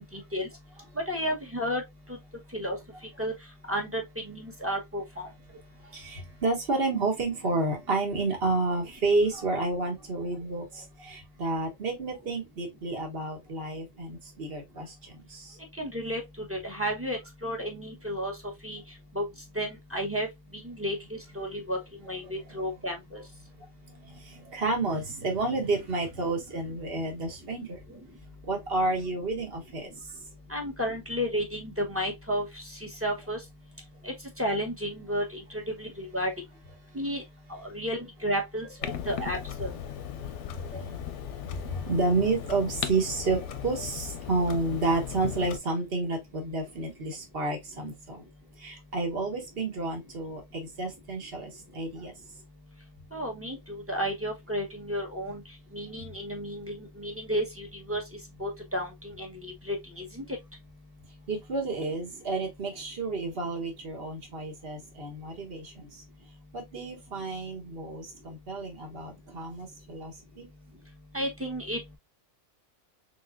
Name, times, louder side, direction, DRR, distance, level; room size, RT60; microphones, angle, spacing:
voice 1, 1.1-1.8 2.5-2.8 3.2-3.3 3.7-4.0 4.3-5.3 15.8-16.2 16.5-18.3 18.6-18.8 19.1-19.2 19.5-20.3 20.6-21.0 21.3-21.8 22.1-23.2 30.5-32.4 33.0-33.4 34.0-35.4 35.8-36.3 36.9-37.2 37.5-38.7 39.1-39.7 53.1-55.4 55.7-58.0 58.4-58.9 59.2-60.2 71.1-71.8, equal, 10° right, 1.0 m, -32 dB
voice 2, 5.8-15.6 22.5-22.6 24.0-28.0 28.4-29.9 38.9-39.0 40.5-40.9 41.5-48.2 48.6-52.1 61.3-66.0 66.5-70.5, right 3 dB, 50° right, 1.3 m, -30 dB
Clock, 38.8-45.6, left 9 dB, 70° left, 0.9 m, -37 dB
3.7 x 3.3 x 2.4 m
omnidirectional pair, 1.3 m